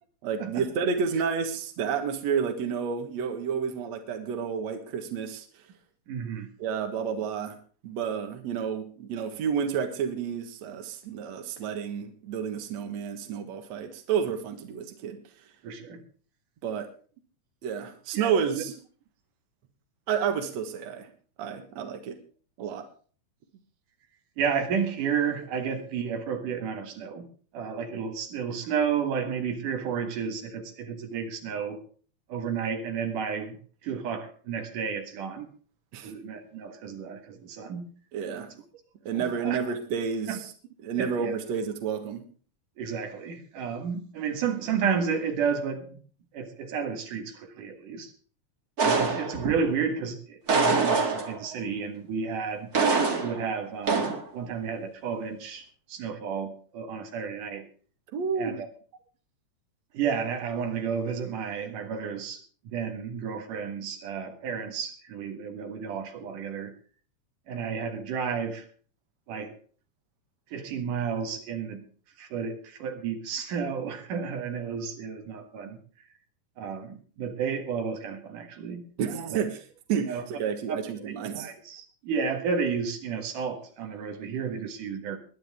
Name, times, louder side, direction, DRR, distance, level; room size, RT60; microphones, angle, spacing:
voice 1, 0.2-5.5 6.6-7.6 7.8-15.2 16.6-16.9 17.6-18.7 20.1-21.1 21.4-22.2 22.6-22.9 35.9-36.1 38.1-38.5 39.1-40.4 40.8-42.2 58.1-58.6 79.0-79.6 79.9-81.5, right 7 dB, 60° right, 6 dB, 2.6 m, -30 dB
voice 2, 6.1-6.5 15.6-16.0 18.1-18.6 24.4-27.3 27.5-31.8 32.3-33.6 33.8-35.5 36.0-37.9 39.1-39.6 40.3-40.4 41.0-41.3 42.8-46.0 46.3-48.1 48.8-52.7 53.2-57.7 58.4-58.7 59.9-66.7 67.5-68.7 69.3-69.6 70.5-71.8 72.2-75.8 76.6-78.9 79.3-79.4 80.1-80.2 80.7-85.2, right 6 dB, 85° right, 5 dB, 3.3 m, -32 dB
sound 1, 48.8-49.7 50.5-51.5 52.7-53.5 53.9-54.2, right 4 dB, 35° right, 2.0 m, -24 dB
21.0 x 10.5 x 3.6 m, 0.41 s
omnidirectional pair, 3.6 m